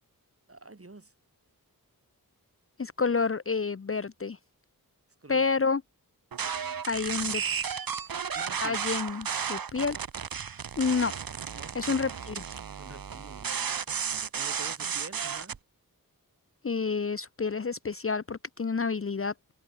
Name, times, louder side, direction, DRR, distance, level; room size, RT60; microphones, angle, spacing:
voice 1, 0.5-1.1 5.2-5.4 8.3-8.8 11.5-12.1 12.7-13.8 14.3-15.6, right 2 dB, 40° right, 6.5 m, -47 dB
voice 2, 2.8-4.4 5.3-5.8 6.9-7.4 8.6-10.0 10.8-11.1 11.7-12.4 16.6-19.3, left 5 dB, 40° left, 0.7 m, -29 dB
sound 1, 6.3-15.6, right 7 dB, 70° right, 1.0 m, -33 dB
open air
wide cardioid pair, 70°, 36 cm